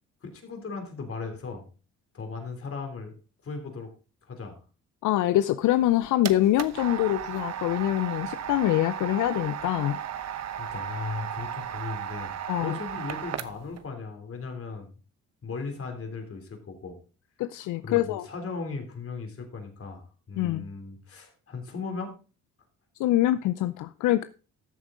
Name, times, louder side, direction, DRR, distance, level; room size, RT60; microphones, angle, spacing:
voice 1, 0.2-1.6 2.1-3.1 3.4-3.9 4.2-4.6 10.6-14.9 15.4-17.0 17.8-22.1, left 4 dB, 45° left, 4 dB, 3.3 m, -37 dB
voice 2, 5.0-10.0 12.5-12.8 17.4-18.3 20.4-20.6 23.0-24.2, left 14 dB, 80° left, 13 dB, 0.6 m, -24 dB
sound 1, 5.7-13.8, right 9 dB, 60° right, 1.0 m, -35 dB
14.0 x 7.2 x 3.8 m, 0.35 s
cardioid pair, 90°, 30 cm